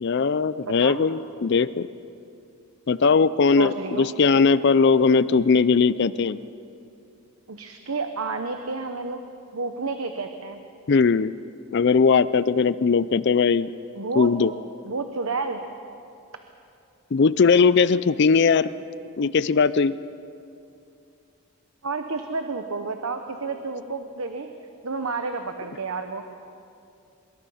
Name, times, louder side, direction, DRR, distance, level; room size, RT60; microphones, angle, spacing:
voice 1, 0.0-1.9 2.9-6.4 10.9-11.3 11.7-13.7 14.2-14.5 17.1-18.7 19.2-20.0, left 5 dB, 50° left, 16 dB, 0.4 m, -19 dB
voice 2, 0.6-1.0 3.6-4.2 7.5-9.2 9.5-10.6 13.9-14.5 14.8-15.6 21.8-24.5 24.8-26.2, right 4 dB, 75° right, 6 dB, 1.0 m, -30 dB
24.5 x 22.5 x 5.7 m, 2.5 s
head